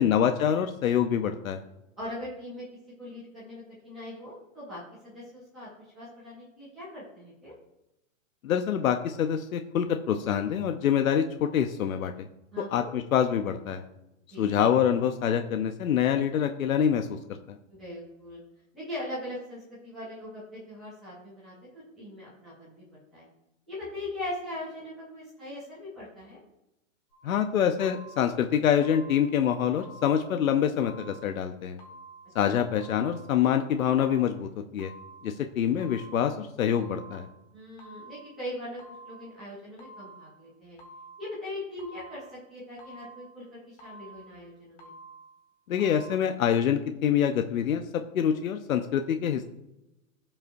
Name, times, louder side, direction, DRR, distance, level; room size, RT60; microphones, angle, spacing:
voice 1, 0.0-1.6 8.4-12.3 12.6-13.8 14.4-17.4 27.2-31.8 32.3-34.9 35.2-37.3 45.7-49.4, left 9 dB, 90° left, 6 dB, 0.8 m, -26 dB
voice 2, 2.0-2.6 3.0-7.5 12.5-12.9 14.3-14.5 17.7-18.4 18.7-21.5 22.0-22.8 23.1-23.2 23.7-26.4 32.5-32.6 37.5-40.8 41.2-44.9, left 1 dB, ahead, -18 dB, 0.4 m, -40 dB
sound 1, 27.1-27.4 27.8-28.4 28.8-29.4 29.8-30.4 30.8-31.4 31.8-32.4 32.8-33.4 33.8-34.4 34.8-35.4 35.8-36.4 36.8-37.4 37.8-38.4 38.8-39.4 39.8-40.4 40.8-41.4 41.8-42.4 42.8-43.4 43.8-44.4 44.8-45.4 45.8-46.1, right 2 dB, 60° left, 3.4 m, -49 dB
16.5 x 5.6 x 2.7 m, 0.91 s
hypercardioid pair, 175°, 40 cm